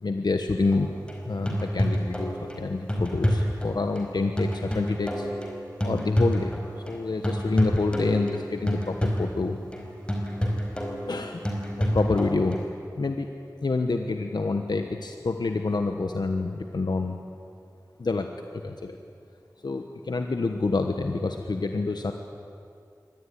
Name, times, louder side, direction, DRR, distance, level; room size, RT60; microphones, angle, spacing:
voice 1, 0.0-0.9 1.2-5.3 5.8-6.6 6.9-9.6 11.1-11.4 11.8-12.6 13.0-13.3 13.6-17.2 18.0-18.3 18.5-19.0 19.6-22.1, left 3 dB, 90° left, 5 dB, 1.2 m, -27 dB
sound 1, 0.7-7.0 7.2-12.7, equal, 15° left, 4.8 m, -29 dB
24.5 x 18.5 x 9.9 m, 2.4 s
wide cardioid pair, 60°, 7 cm